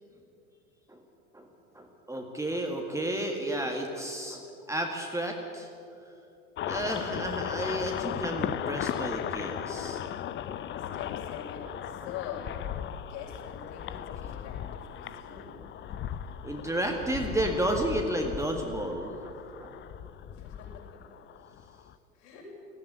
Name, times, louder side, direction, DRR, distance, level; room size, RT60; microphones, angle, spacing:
voice 1, 1.7-5.7 6.7-10.1 10.5-10.6 10.9-11.0 16.4-19.7, right 1 dB, 5° right, 1 dB, 1.9 m, -32 dB
sound 1, 6.6-21.9, left 10 dB, 25° left, 0.7 m, -37 dB
voice 2, 10.8-12.6 13.0-15.6 20.3-21.0 22.1-22.5, left 8 dB, 55° left, -3 dB, 6.9 m, -44 dB
17.0 x 15.0 x 9.9 m, 2.7 s
figure-of-eight pair, 85°, 42 cm